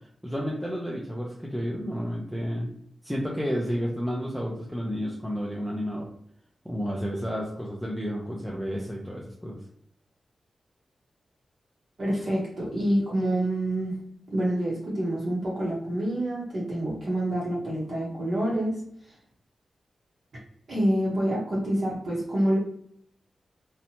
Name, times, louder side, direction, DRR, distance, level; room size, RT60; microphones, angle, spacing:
voice 1, 0.2-2.7 3.0-6.1 6.6-9.6 18.1-18.2, equal, ahead, -3 dB, 0.4 m, -31 dB
voice 2, 12.0-13.9 14.3-18.8 20.7-22.6, right 1 dB, 50° right, -6 dB, 0.8 m, -27 dB
2.7 x 2.1 x 2.8 m, 0.65 s
wide cardioid pair, 150°, 0 cm